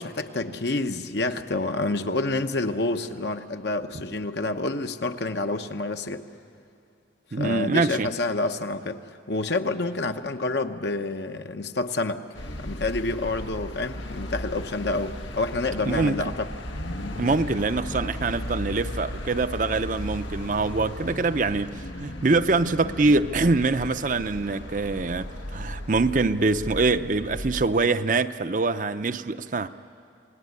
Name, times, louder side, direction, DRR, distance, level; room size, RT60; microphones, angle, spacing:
voice 1, 0.0-6.3 7.3-9.0 9.3-12.2 12.6-16.5, left 2 dB, 65° left, 1.1 m, -28 dB
voice 2, 7.3-8.1 15.9-16.1 17.2-29.7, right 3 dB, 45° right, 0.6 m, -24 dB
sound 1, 12.3-27.6, left 1 dB, 90° left, 1.6 m, -36 dB
29.0 x 19.0 x 9.6 m
head